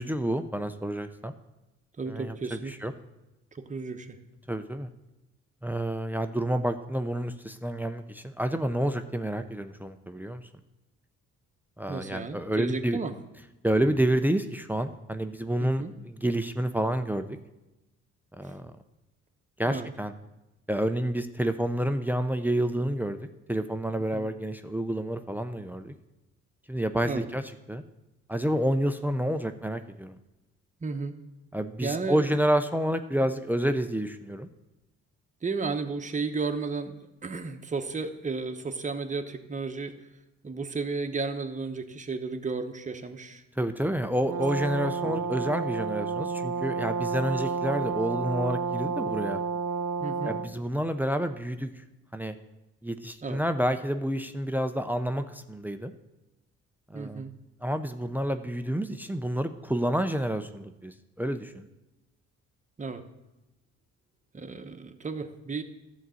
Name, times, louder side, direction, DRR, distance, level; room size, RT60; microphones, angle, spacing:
voice 1, 0.0-1.3 2.1-2.9 4.5-4.9 5.6-10.4 11.8-13.0 13.6-17.4 18.4-18.7 19.6-20.1 20.7-23.2 23.5-25.9 26.7-27.4 27.7-27.8 28.3-30.2 31.5-34.5 43.6-49.4 50.2-51.7 52.1-52.3 52.8-55.9 56.9-57.2 57.6-61.7, right 1 dB, 5° right, 9 dB, 0.6 m, -29 dB
voice 2, 2.0-2.7 3.5-4.2 11.9-13.1 15.6-15.9 18.4-18.5 19.7-19.9 24.1-24.3 27.0-27.3 30.8-31.1 31.8-32.4 35.4-37.0 37.2-39.9 40.4-43.4 45.0-45.2 50.0-50.4 53.2-53.4 56.9-57.3 62.8-63.0 64.3-65.6, right 4 dB, 25° right, 6 dB, 1.0 m, -33 dB
Brass instrument, 44.2-50.5, right 5 dB, 70° right, 0.7 m, -30 dB
12.0 x 4.1 x 7.7 m, 0.99 s
cardioid pair, 90°, 30 cm